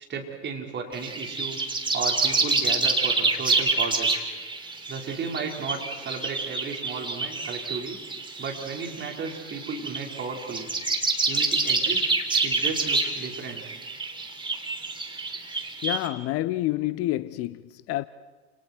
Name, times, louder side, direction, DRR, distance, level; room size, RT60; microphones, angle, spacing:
voice 1, 0.1-1.6 1.9-4.2 4.9-8.0 8.4-10.7 11.3-12.0 12.4-13.7, right 5 dB, 35° right, 5.1 m, -34 dB
sound 1, 0.9-16.1, right 3 dB, 15° right, 3.5 m, -27 dB
voice 2, 15.8-18.0, left 16 dB, 45° left, 0.8 m, -28 dB
30.0 x 29.0 x 4.7 m
figure-of-eight pair, 75°, 33 cm